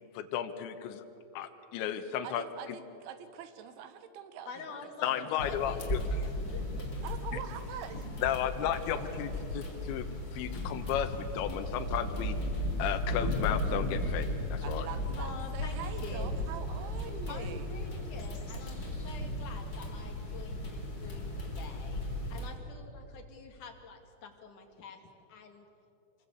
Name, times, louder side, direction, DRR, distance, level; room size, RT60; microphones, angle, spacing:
voice 1, 0.1-1.0 1.3-2.8 5.0-6.0 8.2-10.1 10.3-12.4 12.8-14.9, left 10 dB, 80° left, 7 dB, 3.3 m, -34 dB
voice 2, 2.2-5.5 7.0-8.3 14.6-17.8, right 8 dB, 80° right, 10 dB, 3.6 m, -45 dB
voice 3, 4.5-6.9 15.1-16.3 17.3-25.0 25.3-25.7, left 4 dB, 50° left, 4 dB, 3.0 m, -47 dB
sound 1, 5.4-22.5, left 1 dB, 25° left, 3.1 m, -35 dB
sound 2, 7.5-7.9 8.6-13.5, right 1 dB, 40° right, 8.6 m, -58 dB
27.0 x 22.5 x 8.2 m, 2.8 s
omnidirectional pair, 5.4 m